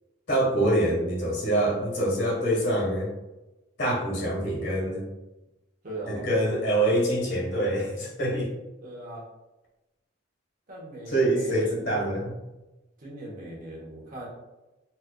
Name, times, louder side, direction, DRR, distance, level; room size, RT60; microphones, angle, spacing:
voice 1, 0.3-3.1 3.8-5.1 6.1-8.5 11.1-12.4, right 1 dB, 65° left, -2 dB, 1.2 m, -25 dB
voice 2, 5.8-6.2 8.8-9.2 10.7-12.0 13.0-14.3, right 1 dB, 45° right, -4 dB, 0.9 m, -39 dB
4.3 x 2.4 x 2.2 m, 1.0 s
head